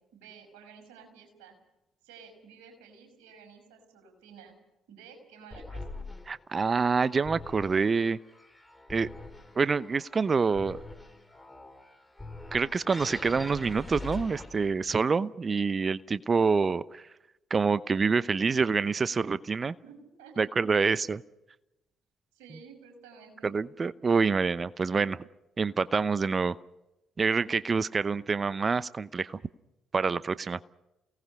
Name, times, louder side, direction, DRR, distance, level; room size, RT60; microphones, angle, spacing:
voice 1, 0.1-1.5 2.0-4.5 4.9-5.8 19.8-20.5 22.3-23.5, right 6 dB, 75° right, 3 dB, 5.8 m, -52 dB
sound 1, 5.5-14.9, left 2 dB, 5° left, 5.1 m, -44 dB
voice 2, 6.3-8.2 8.9-9.1 9.5-10.8 12.5-17.0 17.5-19.7 20.4-21.2 23.4-25.2 25.6-26.6 27.2-29.4 29.9-30.7, right 5 dB, 35° right, 18 dB, 0.8 m, -27 dB
29.0 x 18.5 x 5.6 m, 0.92 s
figure-of-eight pair, 45°, 0 cm